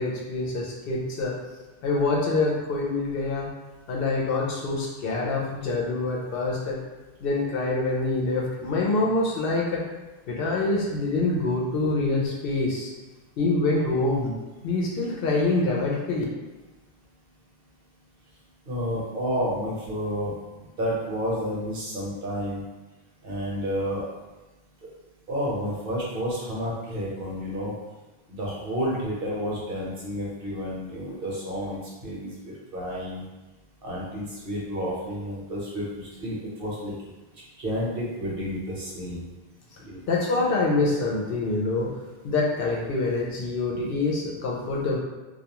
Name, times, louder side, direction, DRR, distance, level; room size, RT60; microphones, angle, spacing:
voice 1, 0.0-1.4 1.8-3.5 3.9-6.8 7.2-9.8 10.3-12.9 13.4-14.3 14.6-16.2 40.1-41.9 42.2-45.0, left 2 dB, 70° left, -2 dB, 0.7 m, -25 dB
voice 2, 18.7-20.3 20.8-22.6 23.2-24.1 25.3-27.7 28.3-33.2 33.8-36.9 37.6-39.3 39.9-40.0, equal, 65° right, -6 dB, 1.0 m, -30 dB
2.3 x 2.2 x 2.8 m, 1.2 s
omnidirectional pair, 1.0 m